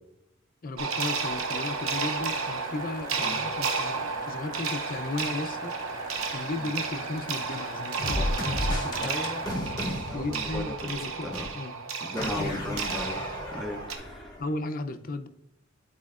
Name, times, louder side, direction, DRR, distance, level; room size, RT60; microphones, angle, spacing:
voice 1, 0.6-5.8 6.0-11.7 12.2-12.8 14.4-15.3, left 2 dB, 45° left, 8 dB, 0.5 m, -36 dB
sound 1, 0.8-14.0, right 5 dB, 90° right, 0.8 m, -32 dB
sound 2, 1.2-9.6, right 1 dB, 20° right, 1.8 m, -42 dB
sound 3, 8.0-11.1 11.3-11.5 12.2-14.5, left 1 dB, 20° left, 1.1 m, -33 dB
voice 2, 8.9-9.4 10.1-11.0 11.2-11.5 12.0-13.2 13.5-14.4, left 1 dB, ahead, 2 dB, 0.6 m, -36 dB
10.5 x 4.3 x 2.4 m, 0.78 s
head